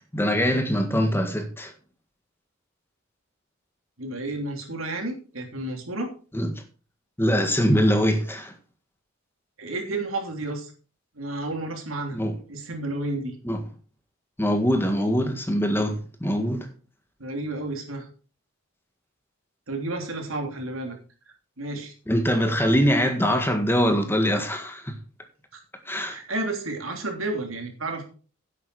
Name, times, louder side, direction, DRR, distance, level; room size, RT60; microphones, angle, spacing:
voice 1, 0.1-1.7 6.3-6.6 7.2-8.5 12.1-12.3 13.4-13.6 14.4-16.7 22.1-25.0 25.8-26.2, equal, 10° left, 1.7 m, -23 dB
voice 2, 4.0-6.1 9.6-10.7 11.2-12.2 12.5-13.4 17.2-18.1 19.7-21.0 21.6-21.9 26.1-28.0, right 2 dB, 85° right, 3.1 m, -31 dB
10.5 x 8.4 x 4.8 m
head